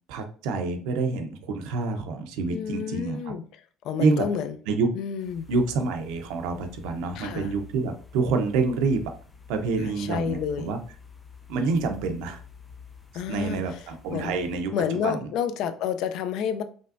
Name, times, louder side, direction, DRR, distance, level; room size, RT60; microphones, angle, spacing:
voice 1, 0.1-3.3 4.0-4.3 4.7-4.9 5.5-9.1 9.5-10.8 11.5-12.4 13.3-14.7 15.0-15.3, right 4 dB, 85° right, 0.8 m, -27 dB
voice 2, 2.5-3.4 3.8-4.5 5.0-5.4 7.2-7.5 9.8-10.7 13.1-13.8 14.1-14.3 14.7-16.6, left 8 dB, 55° left, 0.5 m, -30 dB
sound 1, 5.2-14.6, left 6 dB, 10° left, 0.6 m, -48 dB
5.3 x 3.3 x 2.6 m
cardioid pair, 175°, 0 cm